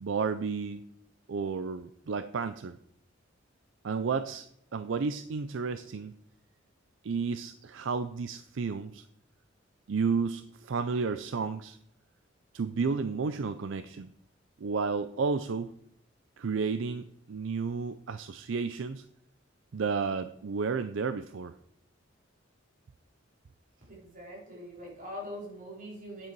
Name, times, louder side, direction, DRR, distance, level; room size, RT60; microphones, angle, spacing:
voice 1, 0.0-0.8 1.3-2.8 3.8-4.5 4.7-6.2 7.0-9.1 9.9-11.8 12.5-14.1 14.6-15.8 16.4-19.0 19.7-21.5, right 5 dB, 65° right, 11 dB, 0.4 m, -32 dB
voice 2, 23.9-26.3, equal, 45° right, -3 dB, 3.9 m, -43 dB
9.4 x 7.5 x 4.6 m, 0.72 s
head